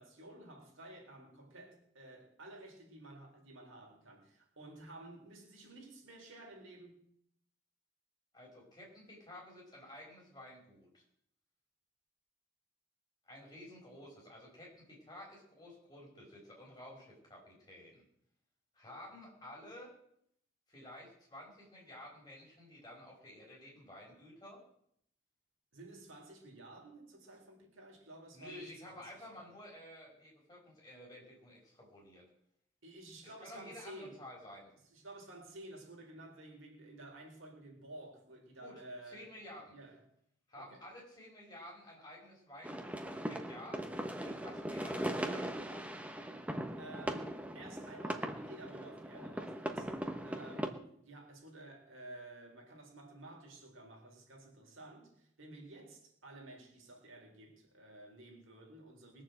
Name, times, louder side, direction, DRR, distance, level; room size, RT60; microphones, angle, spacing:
voice 1, 0.0-7.1 25.7-29.5 32.8-34.2 34.9-39.3 39.7-40.0 40.5-40.8 46.8-59.2, right 1 dB, 75° right, 4.1 m, -53 dB
voice 2, 8.3-11.0 13.3-18.0 18.7-19.9 20.7-24.6 28.3-32.3 33.2-34.7 38.6-38.7 39.1-39.7 40.5-43.8 44.2-45.9, left 1 dB, 20° left, 5.4 m, -52 dB
sound 1, 42.6-50.7, right 1 dB, 5° right, 1.0 m, -39 dB
21.0 x 7.2 x 7.7 m
head